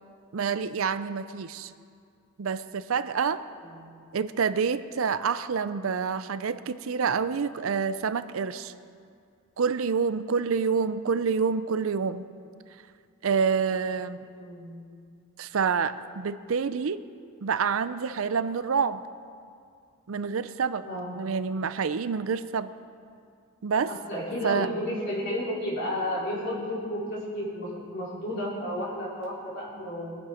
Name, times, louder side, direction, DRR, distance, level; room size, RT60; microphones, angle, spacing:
voice 1, 0.3-1.7 2.4-3.4 4.1-8.7 9.6-12.3 13.2-14.3 15.4-17.0 17.4-19.0 20.1-20.8 21.1-22.7 23.6-23.9 24.4-24.7, right 6 dB, 75° right, 13 dB, 0.5 m, -27 dB
voice 2, 3.6-3.9 14.3-14.8 20.8-21.2 23.9-30.2, equal, 55° left, -6 dB, 4.7 m, -32 dB
22.5 x 9.0 x 5.0 m, 2.3 s
head